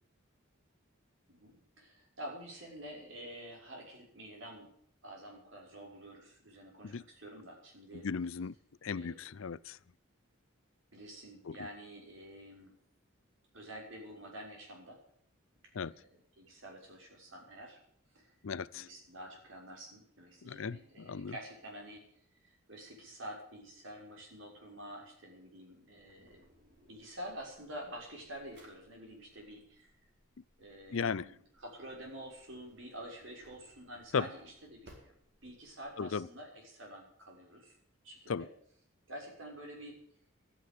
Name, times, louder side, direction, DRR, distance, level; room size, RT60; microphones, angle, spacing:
voice 1, 1.3-4.7 5.0-8.0 8.9-9.2 10.9-12.7 13.5-15.0 15.8-17.8 18.1-18.3 18.7-22.0 22.4-26.4 26.9-29.9 30.6-35.1 35.4-37.8 38.0-38.5 39.1-40.0, right 1 dB, 70° right, 0 dB, 6.2 m, -48 dB
voice 2, 7.9-8.5 8.8-9.8 11.5-11.6 15.7-15.9 18.4-18.9 20.4-21.3 30.9-31.3 34.1-34.3 36.0-36.3 38.3-38.5, left 5 dB, 75° left, 19 dB, 0.5 m, -36 dB
Drawer open or close, 26.0-35.9, equal, 55° right, 4.5 m, -64 dB
13.0 x 9.9 x 9.7 m, 0.66 s
head